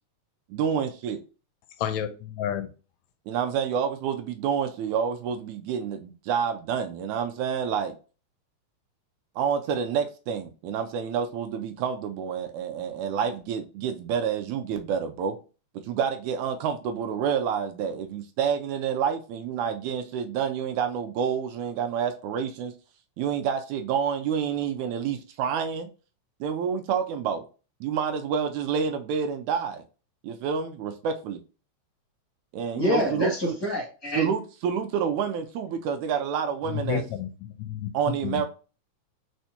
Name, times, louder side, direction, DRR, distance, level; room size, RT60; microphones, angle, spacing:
voice 1, 0.5-1.2 3.3-7.9 9.4-15.4 15.9-22.7 23.2-25.9 26.4-27.4 27.8-29.8 30.2-31.4 32.5-33.6 34.2-37.0 37.9-38.5, right 7 dB, 85° right, 1.9 m, -28 dB
voice 2, 1.8-2.7 36.7-38.4, left 9 dB, 80° left, 1.7 m, -31 dB
voice 3, 32.7-34.3, left 1 dB, 15° left, 1.1 m, -27 dB
4.6 x 4.3 x 2.7 m
omnidirectional pair, 3.4 m